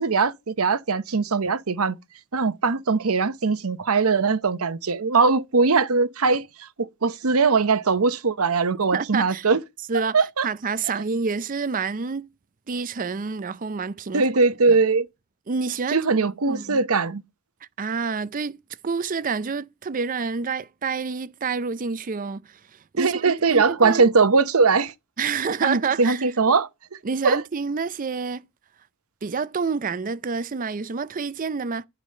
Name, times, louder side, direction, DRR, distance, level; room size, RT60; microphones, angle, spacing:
voice 1, 0.0-2.0 2.3-9.6 10.1-10.5 14.1-15.1 15.9-17.2 23.0-24.9 25.6-27.0 27.2-27.4, right 4 dB, 75° right, 0.9 m, -21 dB
voice 2, 8.9-9.5 9.9-12.3 12.7-14.3 14.7-14.8 15.5-16.1 16.5-16.8 17.8-22.6 22.9-24.1 25.2-26.2 27.0-28.5 29.2-31.9, right 5 dB, 40° right, 0.5 m, -28 dB
11.5 x 4.9 x 6.5 m
head